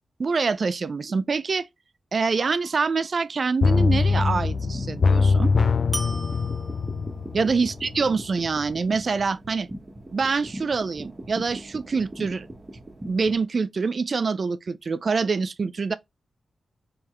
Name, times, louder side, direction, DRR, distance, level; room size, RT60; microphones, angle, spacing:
voice 1, 0.2-1.7 2.1-5.5 7.3-9.7 10.1-12.5 13.1-15.9, right 4 dB, 55° right, 0.4 m, -25 dB
sound 1, 2.4-3.1 5.9-7.3, equal, 5° right, 1.2 m, -38 dB
sound 2, 3.6-8.3 8.6-8.7, left 4 dB, 60° left, 0.4 m, -22 dB
sound 3, 4.3-13.4, right 1 dB, 30° right, 1.2 m, -41 dB
3.6 x 3.4 x 3.1 m
cardioid pair, 55°, 0 cm